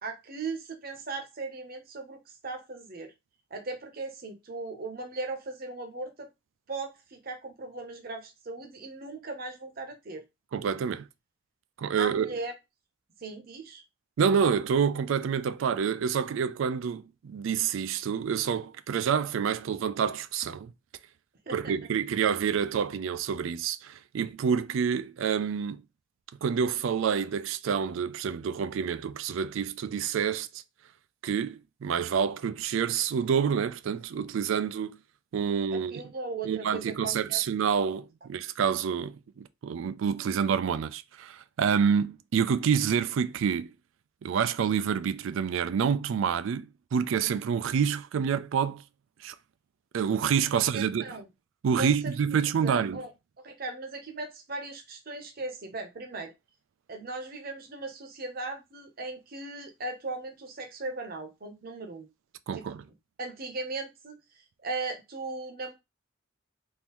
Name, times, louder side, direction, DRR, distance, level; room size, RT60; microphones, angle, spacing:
voice 1, 0.0-3.1 3.5-6.3 6.7-10.2 12.0-12.5 13.2-13.8 21.5-21.9 35.5-37.4 50.7-51.3 51.8-52.1 52.6-53.1 53.4-56.3 56.9-62.1 62.5-62.7 63.2-65.7, right 3 dB, 45° right, 0.8 m, -38 dB
voice 2, 10.5-11.1 11.8-12.3 14.2-20.7 21.5-25.8 26.4-30.6 31.2-35.0 35.3-36.0 36.4-43.7 44.2-48.8 49.2-49.3 49.9-51.1 51.6-53.0 62.5-62.8, right 7 dB, 75° right, 0.3 m, -28 dB
3.6 x 2.6 x 3.0 m
head